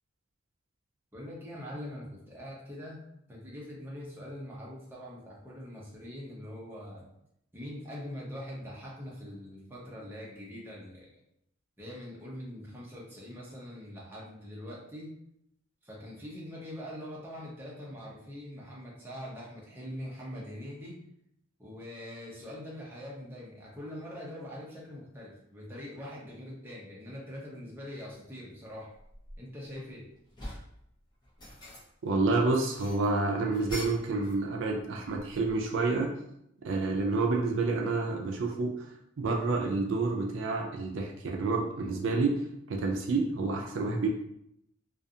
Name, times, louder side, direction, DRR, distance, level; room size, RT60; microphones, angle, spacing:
voice 1, 1.1-3.0 3.3-7.1 7.5-11.1 11.8-15.1 15.8-21.0 21.6-28.9 29.4-30.1, left 1 dB, 10° right, -5 dB, 0.6 m, -43 dB
sound 1, 28.0-28.2 28.8-29.8 30.1-30.8 31.2-32.1 32.5-34.4 34.7-35.7, left 1 dB, 20° left, 0.7 m, -44 dB
voice 2, 32.0-36.1 36.6-38.9 39.2-42.4 42.7-44.1, right 3 dB, 65° right, 1 dB, 0.4 m, -29 dB
2.4 x 2.4 x 2.6 m, 0.76 s
head